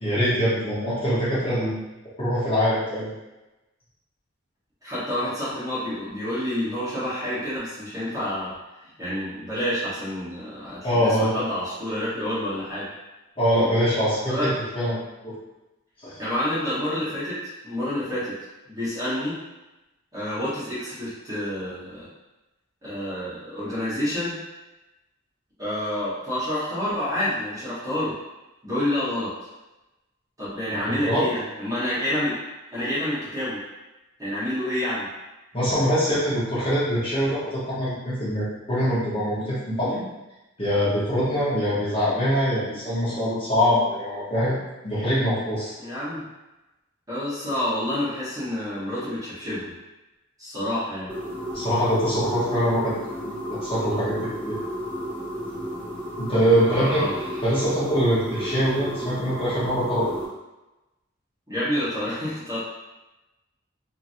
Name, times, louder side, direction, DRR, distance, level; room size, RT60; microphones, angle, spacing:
voice 1, 0.0-1.8 2.2-3.1 10.8-11.4 13.4-15.0 15.2-15.3 16.0-16.2 30.7-31.2 35.5-40.0 40.6-44.6 44.8-45.7 51.5-53.0 53.2-54.6 56.2-57.0 57.4-60.1, equal, 30° left, -11 dB, 1.0 m, -23 dB
voice 2, 4.8-8.6 9.0-12.9 14.3-14.5 16.2-17.4 17.6-18.4 18.7-19.4 20.1-22.1 22.8-24.4 25.6-28.1 28.6-29.3 30.4-32.4 32.7-33.6 34.2-35.1 45.8-46.2 47.1-49.7 50.4-51.1 56.6-57.2 61.5-62.6, left 1 dB, 20° right, -11 dB, 1.2 m, -28 dB
sound 1, 51.1-60.3, right 1 dB, 5° left, 0.6 m, -33 dB
2.9 x 2.7 x 2.6 m, 1.0 s
head